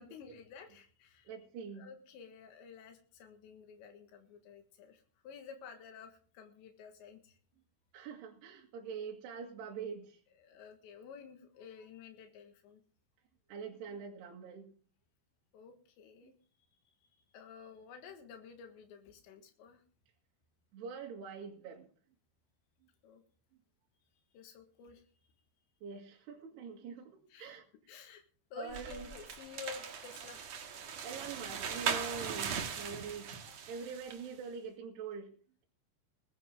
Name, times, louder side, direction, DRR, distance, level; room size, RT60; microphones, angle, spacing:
voice 1, 0.0-1.3 1.7-7.4 10.4-12.8 15.5-16.3 16.9-17.0 17.3-19.8 23.0-23.2 24.3-25.1 27.3-27.6 27.9-28.2 28.5-30.8, left 6 dB, 90° left, 5 dB, 3.9 m, -52 dB
voice 2, 1.3-1.9 7.9-10.2 13.5-14.7 16.2-16.3 20.7-21.9 25.8-27.7 28.6-29.1 31.0-33.3 33.7-35.3, right 6 dB, 70° right, -1 dB, 4.0 m, -44 dB
sound 1, 28.7-34.3, right 7 dB, 55° right, 2.1 m, -39 dB
20.5 x 10.5 x 3.7 m, 0.43 s
omnidirectional pair, 5.0 m